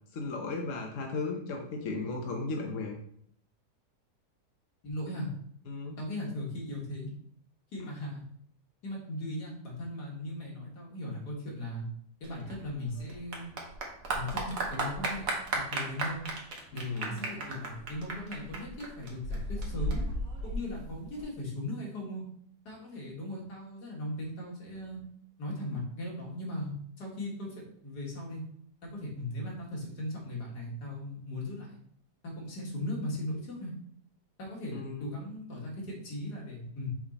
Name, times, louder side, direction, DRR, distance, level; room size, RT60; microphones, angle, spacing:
voice 1, 0.1-2.9 5.7-6.0 16.7-17.1 34.7-35.1, left 3 dB, 55° left, 0 dB, 1.1 m, -35 dB
voice 2, 4.8-5.3 6.0-7.1 7.7-8.2 8.8-11.9 12.2-13.5 14.1-16.3 16.7-20.0 20.4-22.3 22.7-25.0 25.4-28.4 28.8-31.8 32.2-33.7 34.4-36.9, left 1 dB, 70° left, -2 dB, 2.2 m, -38 dB
Clapping / Applause, 12.2-21.2, right 2 dB, 55° right, 1.4 m, -35 dB
6.2 x 3.8 x 4.1 m, 0.64 s
omnidirectional pair, 1.8 m